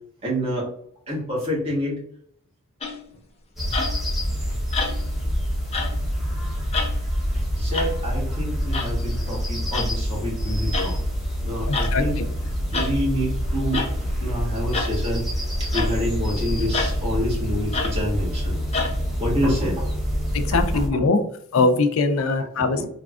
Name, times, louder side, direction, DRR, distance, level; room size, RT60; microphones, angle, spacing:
voice 1, 0.2-0.7 1.1-2.0 4.3-4.4 7.3-11.0 11.4-12.2 12.7-13.8 14.2-15.3 15.6-18.6 19.2-19.9 20.5-21.0 22.6-22.9, equal, 30° right, -5 dB, 1.3 m, -27 dB
sound 1, 2.8-3.1 3.7-4.1 4.7-5.2 5.7-6.0 6.7-7.0 7.7-7.9 8.7-8.9 9.7-9.9 10.7-11.0 11.7-12.0 12.7-13.0 13.7-13.9 14.7-15.0 15.7-16.0 16.7-17.0 17.7-18.0 18.7-19.0, left 4 dB, 30° left, 0.5 m, -28 dB
sound 2, 3.6-20.9, equal, ahead, 0.9 m, -26 dB
voice 2, 11.7-12.0 20.3-21.2 21.5-22.8, left 3 dB, 85° left, 8 dB, 0.4 m, -21 dB
3.3 x 2.1 x 2.4 m, 0.65 s
head